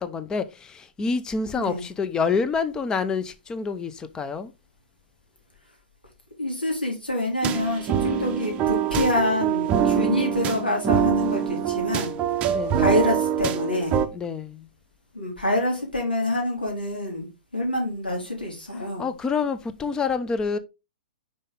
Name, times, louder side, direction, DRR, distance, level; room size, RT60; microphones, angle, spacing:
voice 1, 0.0-4.5 12.5-12.9 14.1-14.7 18.7-20.6, left 5 dB, 15° left, 0.7 m, -27 dB
voice 2, 1.6-1.9 6.4-12.2 12.8-14.0 15.1-17.3 17.5-19.1, left 1 dB, 85° left, 2.8 m, -26 dB
sound 1, 7.4-14.1, right 9 dB, 25° right, 0.7 m, -24 dB
5.3 x 5.2 x 3.8 m
figure-of-eight pair, 110°, 5 cm